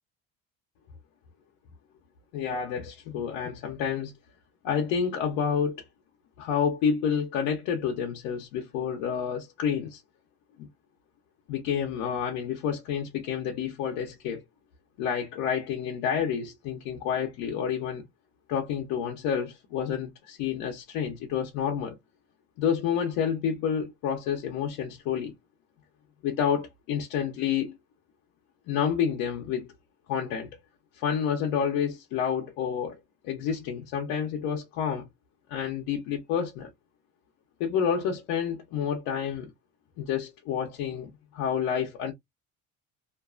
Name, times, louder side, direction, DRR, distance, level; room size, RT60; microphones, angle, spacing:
voice 1, 2.3-4.1 4.6-5.8 6.4-10.0 10.6-10.7 11.5-14.4 15.0-18.0 18.5-22.0 22.6-25.3 26.2-27.7 28.7-29.7 30.1-30.5 31.0-33.0 33.2-35.0 35.5-36.7 37.6-39.5 40.0-42.1, left 7 dB, 85° left, 0.8 m, -29 dB
2.6 x 2.3 x 2.4 m
cardioid pair, 115°, 30 cm